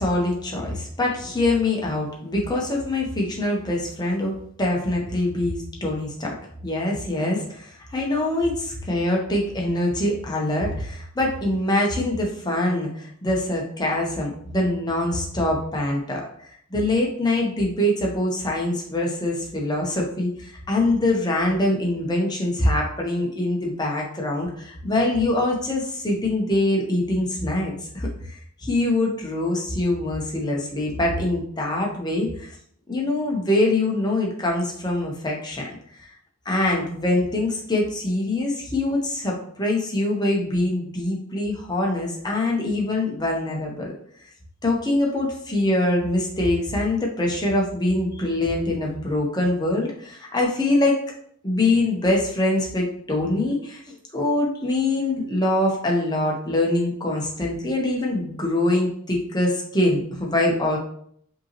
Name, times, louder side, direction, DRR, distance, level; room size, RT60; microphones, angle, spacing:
voice 1, 0.0-6.3 6.6-16.2 16.7-28.1 28.6-32.5 32.9-36.1 36.5-43.9 44.6-51.0 51.4-60.8, left 1 dB, 20° left, -1 dB, 0.8 m, -24 dB
5.2 x 2.9 x 3.0 m, 0.65 s
head